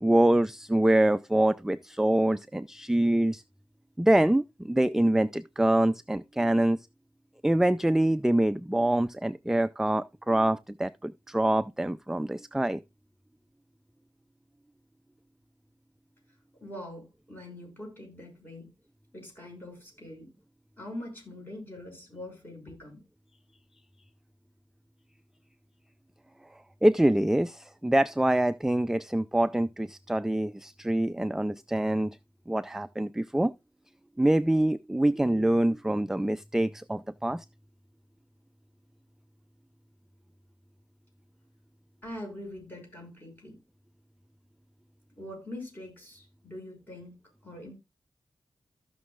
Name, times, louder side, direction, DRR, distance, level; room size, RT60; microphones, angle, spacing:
voice 1, 0.0-3.4 4.0-6.8 7.4-12.8 26.8-32.2 32.5-33.5 34.2-37.4, right 1 dB, 5° right, 0.4 m, -25 dB
voice 2, 16.6-18.7 19.1-20.3 20.8-23.0 42.0-43.6 45.2-47.8, left 1 dB, 20° left, 6.2 m, -43 dB
15.0 x 6.2 x 2.4 m
cardioid pair, 65°, 9 cm